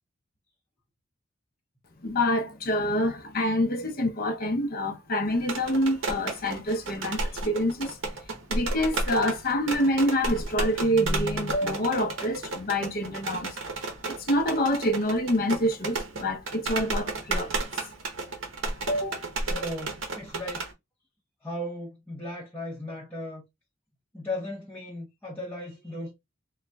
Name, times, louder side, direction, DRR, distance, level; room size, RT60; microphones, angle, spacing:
voice 1, 2.0-8.0 8.5-13.6 14.1-17.5 18.9-19.3, equal, 50° left, 0.7 m, -26 dB
sound 1, 5.4-20.7, right 2 dB, 70° right, 0.8 m, -33 dB
voice 2, 19.4-20.7 21.4-23.4 24.1-26.1, left 1 dB, 10° left, 0.9 m, -36 dB
3.9 x 2.2 x 2.2 m
head